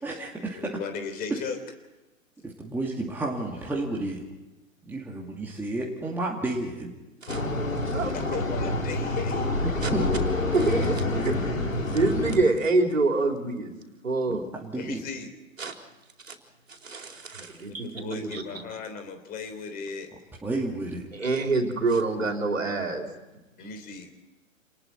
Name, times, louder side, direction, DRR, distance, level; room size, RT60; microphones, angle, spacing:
voice 1, 0.0-0.7 2.4-4.2 4.9-6.9 9.6-10.1 14.3-15.0 20.4-21.0, right 2 dB, 5° right, -3 dB, 2.5 m, -31 dB
voice 2, 0.5-1.6 8.1-9.5 14.7-15.3 17.7-20.1 23.6-24.1, left 5 dB, 20° left, 7 dB, 3.4 m, -37 dB
sound 1, 7.3-12.4, left 2 dB, 75° left, 3.8 m, -27 dB
voice 3, 7.9-8.4 9.8-9.9 10.5-13.7 14.0-14.5 15.6-15.7 16.3-16.4 16.7-18.6 21.1-23.1, right 3 dB, 70° right, 3 dB, 4.1 m, -26 dB
28.0 x 20.5 x 4.5 m, 1.1 s
figure-of-eight pair, 110°, 40 cm